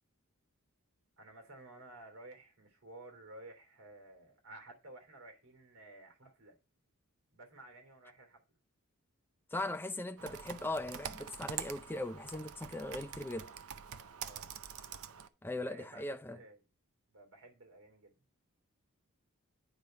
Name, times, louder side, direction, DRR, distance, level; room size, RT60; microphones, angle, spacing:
voice 1, 1.2-6.5 7.3-8.4 9.5-9.8 10.1-10.6 14.2-14.6 15.6-16.6 17.1-18.2, right 2 dB, 60° right, 3.0 m, -54 dB
voice 2, 9.5-13.5 15.4-16.4, left 2 dB, 10° left, 0.4 m, -39 dB
Computer keyboard, 10.2-15.3, right 8 dB, 75° right, 0.6 m, -45 dB
9.4 x 5.1 x 4.2 m
head